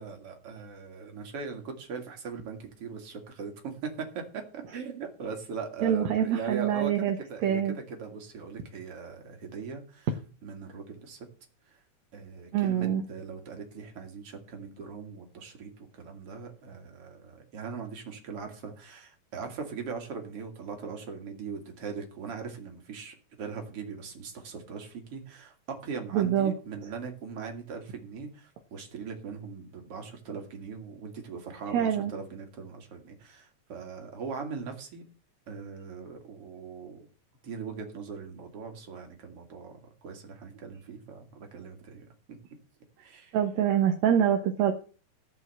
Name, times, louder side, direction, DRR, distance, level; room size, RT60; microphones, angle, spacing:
voice 1, 0.0-10.1 10.4-11.3 11.7-11.8 12.1-35.0 35.5-37.1 37.4-42.1 43.0-43.4, right 5 dB, 50° right, 3 dB, 3.3 m, -40 dB
voice 2, 5.8-7.2 7.4-7.8 12.5-13.0 26.1-26.5 31.7-32.1 43.3-44.7, right 9 dB, 70° right, 4 dB, 2.4 m, -25 dB
15.5 x 5.6 x 7.8 m, 0.38 s
omnidirectional pair, 3.4 m